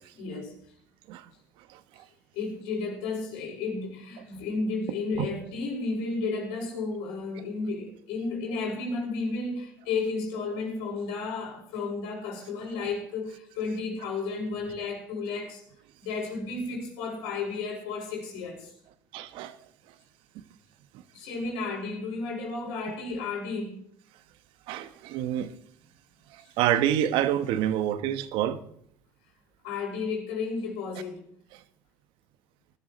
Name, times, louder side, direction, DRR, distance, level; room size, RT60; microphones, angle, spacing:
voice 1, 0.2-0.5 2.3-15.6 16.0-18.7 21.1-23.8 29.6-31.2, left 4 dB, 75° left, 5.0 m, -32 dB
voice 2, 19.1-19.5 24.7-25.5 26.3-28.6, right 11 dB, 70° right, 1.1 m, -27 dB
18.0 x 12.5 x 3.1 m
hypercardioid pair, 75°, 9 cm